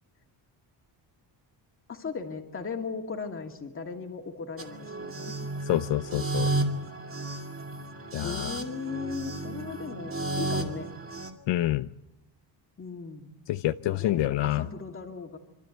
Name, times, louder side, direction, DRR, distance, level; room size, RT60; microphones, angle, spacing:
voice 1, 1.9-5.4 8.2-10.9 12.8-13.3 13.8-15.4, left 5 dB, 30° left, 3 dB, 2.5 m, -37 dB
sound 1, 4.6-11.3, right 2 dB, 30° right, 2.2 m, -33 dB
voice 2, 5.7-6.5 8.1-8.5 11.5-11.9 13.5-14.6, left 14 dB, 75° left, 11 dB, 0.7 m, -27 dB
26.5 x 13.0 x 9.3 m, 0.94 s
cardioid pair, 170°, 44 cm